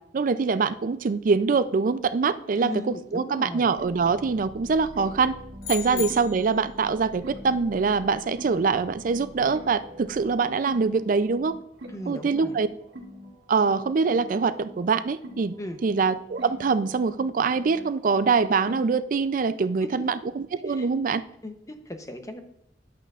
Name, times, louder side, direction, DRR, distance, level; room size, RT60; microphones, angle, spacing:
voice 1, 0.1-2.7 3.1-5.3 5.7-11.6 12.1-12.7 13.5-15.5 15.8-21.2, right 4 dB, 50° right, 14 dB, 0.4 m, -24 dB
voice 2, 2.6-3.7 5.9-6.1 11.9-12.5 15.6-15.8 19.8-20.0 20.7-20.9 21.4-22.4, left 1 dB, 20° left, 7 dB, 0.7 m, -37 dB
sound 1, 3.8-19.2, equal, 70° right, 1.6 m, -44 dB
sound 2, 5.6-6.7, left 10 dB, 55° left, 0.7 m, -35 dB
11.0 x 8.2 x 2.4 m, 0.76 s
head